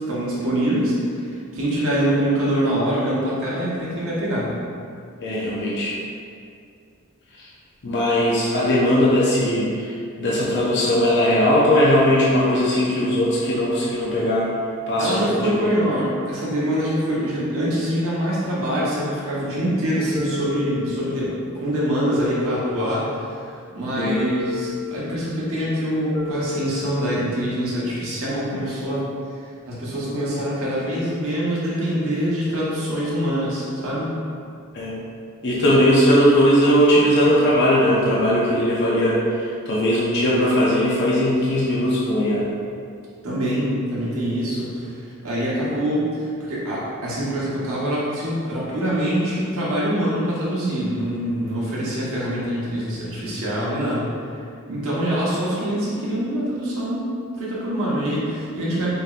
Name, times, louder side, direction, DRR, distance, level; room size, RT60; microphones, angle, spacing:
voice 1, 0.1-1.0 1.2-4.5 15.0-23.2 23.7-29.1 29.7-34.1 35.6-35.7 43.2-54.1 54.7-57.1 57.4-58.9, equal, 65° right, -7 dB, 1.1 m, -24 dB
voice 2, 5.2-6.0 7.4-7.5 7.8-14.5 14.9-15.8 24.0-24.2 34.7-34.9 35.4-42.5, equal, 55° left, -7 dB, 0.6 m, -19 dB
sound 1, 20.2-21.3 22.2-23.3 24.1-25.3 26.1-27.3, left 4 dB, 15° left, 0.5 m, -32 dB
5.0 x 2.9 x 2.4 m, 2.3 s
head